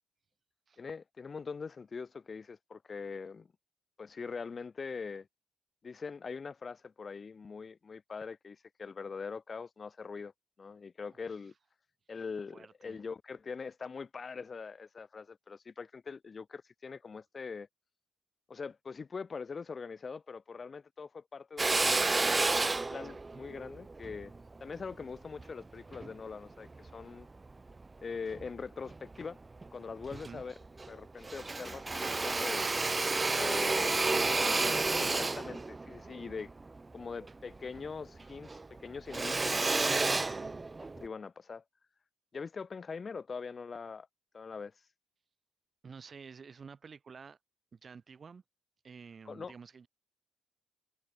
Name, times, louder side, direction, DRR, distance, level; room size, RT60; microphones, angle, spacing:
voice 1, 0.8-3.5 4.0-5.3 5.8-10.3 10.6-11.5 12.1-17.7 18.5-24.3 24.6-27.3 28.0-29.4 29.7-30.5 30.9-32.7 33.3-36.5 36.9-40.3 41.0-41.6 42.3-44.1 44.3-44.7 49.3-49.5, left 5 dB, 35° left, 5.3 m, -43 dB
voice 2, 12.5-13.0 23.0-23.4 30.1-30.4 40.1-40.6 45.8-47.4 47.7-48.4 48.8-49.9, right 5 dB, 40° right, 7.3 m, -51 dB
Drill, 21.6-26.1 26.7-27.8 28.3-29.2 29.6-29.7 30.0-31.0 31.2-37.9 38.2-41.1, right 3 dB, 20° right, 0.4 m, -31 dB
cardioid pair, 90°, 0 cm